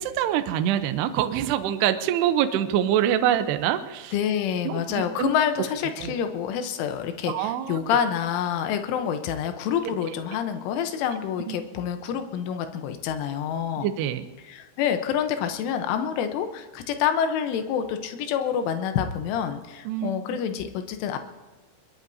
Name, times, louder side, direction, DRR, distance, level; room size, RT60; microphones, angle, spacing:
voice 1, 0.0-4.1 4.7-5.3 6.0-6.1 7.3-7.8 9.8-10.0 11.5-11.6 13.8-14.3 19.9-20.1, right 11 dB, 85° right, 9 dB, 2.3 m, -25 dB
voice 2, 4.1-13.9 14.5-21.2, left 8 dB, 75° left, 7 dB, 3.3 m, -27 dB
22.0 x 21.5 x 2.7 m, 1.3 s
omnidirectional pair, 5.9 m